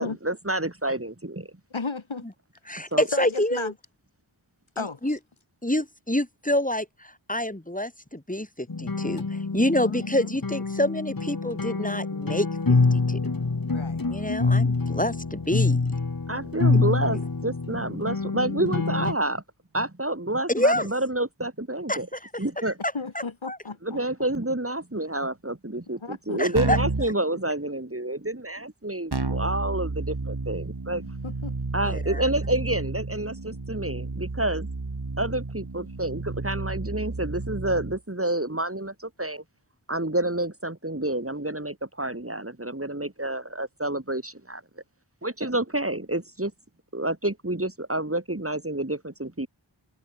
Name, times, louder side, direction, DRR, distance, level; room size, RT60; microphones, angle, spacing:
voice 1, 0.0-1.5 2.9-3.1 16.3-19.4 19.7-22.1 22.4-22.8 23.8-31.1 31.7-34.7 35.2-39.4 39.9-44.6 45.2-46.5 46.9-49.5, right 1 dB, 30° right, 4.6 m, -29 dB
voice 2, 1.7-2.3 3.1-3.7 4.8-5.0 9.7-10.4 13.7-14.0 22.9-24.0 26.0-26.6 31.2-31.5, left 4 dB, 80° left, 3.0 m, -34 dB
voice 3, 2.7-3.7 4.8-5.2 5.6-13.2 14.1-15.8 20.5-20.9 21.9-22.0 22.8-22.9 23.5-23.6 26.4-26.8 31.9-32.2, left 1 dB, 15° left, 5.2 m, -27 dB
sound 1, 8.7-19.1, left 3 dB, 45° left, 1.9 m, -26 dB
Keyboard (musical), 26.6-27.1 29.1-38.0, right 3 dB, 55° right, 3.9 m, -31 dB
open air
wide cardioid pair, 45°, 47 cm